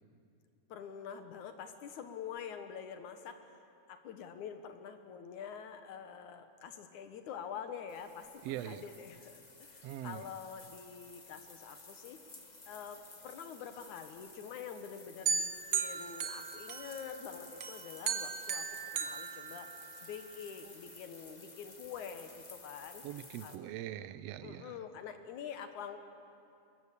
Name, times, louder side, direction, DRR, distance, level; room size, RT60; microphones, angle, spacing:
voice 1, 0.7-3.6 3.9-12.2 12.7-19.7 20.0-23.0 23.4-23.7 24.4-26.0, left 7 dB, 70° left, 8 dB, 2.6 m, -46 dB
sound 1, 7.9-23.6, left 3 dB, 40° left, 0.5 m, -54 dB
voice 2, 8.4-8.9 9.8-10.3 23.0-24.7, right 12 dB, 75° right, 14 dB, 1.5 m, -42 dB
sound 2, 15.3-17.2 17.6-20.1, right 6 dB, 55° right, 1.2 m, -36 dB
23.0 x 21.5 x 8.5 m, 2.6 s
omnidirectional pair, 3.6 m